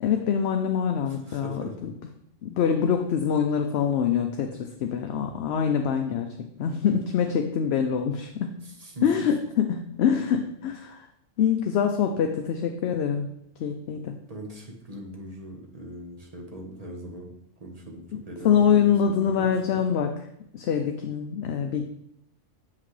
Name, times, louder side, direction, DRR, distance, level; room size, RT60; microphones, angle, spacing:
voice 1, 0.0-1.9 2.4-8.6 9.0-11.1 11.4-13.3 13.6-14.1 18.4-20.1 20.5-21.8, left 7 dB, 65° left, 5 dB, 0.7 m, -25 dB
voice 2, 1.1-1.7 8.6-9.3 14.3-17.3 17.6-19.8, right 1 dB, 30° right, 0 dB, 1.2 m, -40 dB
7.3 x 5.8 x 3.2 m, 0.75 s
omnidirectional pair, 1.3 m